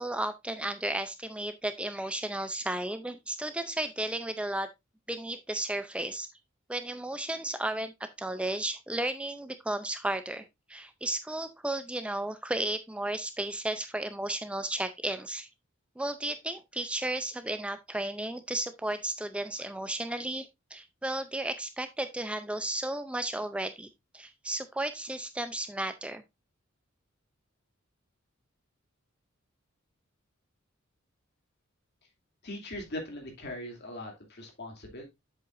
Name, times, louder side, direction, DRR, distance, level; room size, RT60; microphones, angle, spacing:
voice 1, 0.0-4.7 5.1-6.3 6.7-7.9 8.2-15.5 16.0-23.9 24.1-26.2, right 1 dB, 5° right, 0.4 m, -34 dB
voice 2, 32.4-35.1, left 1 dB, 55° left, 2.7 m, -40 dB
7.8 x 7.6 x 2.5 m
head